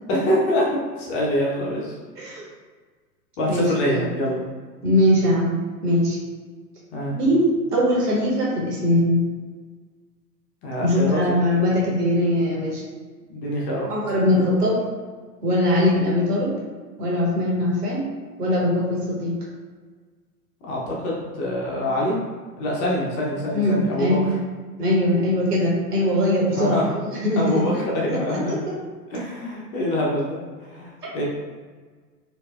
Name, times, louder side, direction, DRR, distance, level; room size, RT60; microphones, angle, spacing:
voice 1, 0.1-0.7 1.0-2.0 3.4-4.4 6.9-7.1 10.6-11.2 13.3-13.9 20.7-22.1 22.6-24.2 26.5-27.0 27.4-28.5 29.1-31.2, left 1 dB, 25° left, -4 dB, 0.7 m, -25 dB
voice 2, 3.5-4.1 4.8-6.2 7.1-9.2 10.8-12.8 13.9-14.8 15.4-16.5 17.0-18.0 18.4-19.3 23.5-24.3 24.8-27.8 28.1-28.7, left 1 dB, 70° right, -4 dB, 1.4 m, -21 dB
4.5 x 2.7 x 2.4 m, 1.5 s
figure-of-eight pair, 100°, 49 cm